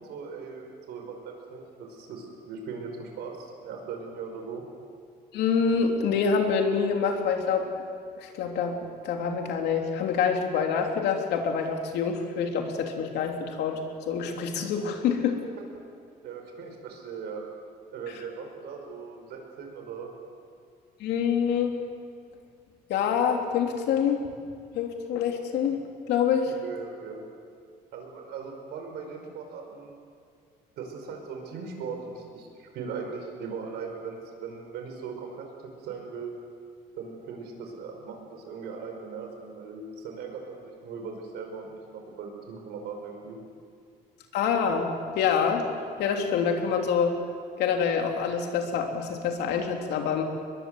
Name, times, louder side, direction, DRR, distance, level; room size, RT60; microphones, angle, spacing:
voice 1, 0.0-4.6 16.2-17.4 17.9-20.1 26.6-27.2 27.9-29.9 30.8-35.5 35.8-36.3 36.9-43.4, right 5 dB, 75° right, 3 dB, 5.3 m, -39 dB
voice 2, 5.3-7.7 8.2-8.8 9.0-13.8 14.1-15.4 21.0-21.7 22.9-24.2 24.7-25.8 26.1-26.5 44.3-45.6 46.0-47.2 47.6-50.2, left 6 dB, 80° left, 3 dB, 3.2 m, -26 dB
23.0 x 21.5 x 8.0 m, 2.3 s
cardioid pair, 110°, 17 cm